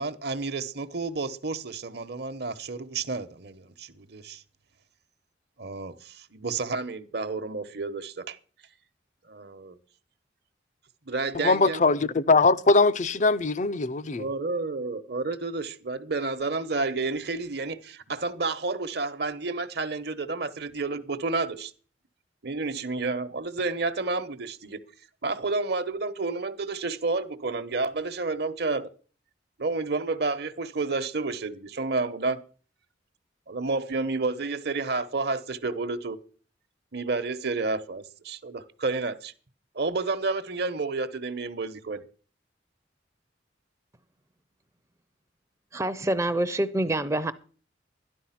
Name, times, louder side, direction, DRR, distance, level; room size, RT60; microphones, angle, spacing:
voice 1, 0.0-4.4 5.6-8.4 9.3-9.8 11.1-11.8 14.2-21.7 22.4-24.8 25.2-28.9 29.6-32.4 33.5-36.2 36.9-39.3 39.7-42.0, right 3 dB, 60° right, 1.1 m, -30 dB
voice 2, 11.3-14.2, left 3 dB, 40° left, 0.6 m, -21 dB
voice 3, 45.7-47.3, right 1 dB, 15° right, 0.6 m, -26 dB
13.0 x 11.0 x 5.9 m
head